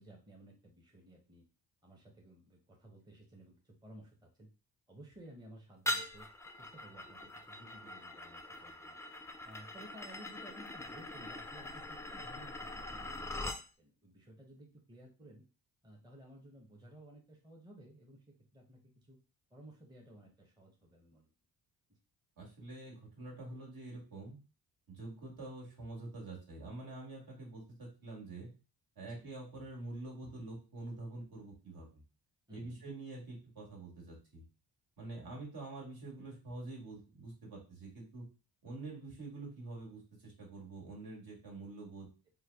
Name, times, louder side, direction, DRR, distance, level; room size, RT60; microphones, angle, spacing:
voice 1, 0.0-1.4 1.8-4.5 4.9-6.3 6.6-9.0 9.4-15.4 15.8-19.2 19.5-21.3 21.9-22.0 29.0-29.3 32.5-32.8 35.3-35.4, right 1 dB, 10° right, 0 dB, 0.8 m, -56 dB
sound 1, 5.9-13.6, left 1 dB, 5° left, 0.3 m, -42 dB
voice 2, 22.4-24.4 24.9-28.5 29.0-32.0 32.5-34.4 35.0-38.3 38.6-42.1, right 2 dB, 60° right, -3 dB, 1.8 m, -46 dB
3.2 x 2.2 x 3.4 m, 0.34 s
supercardioid pair, 60°, 42 cm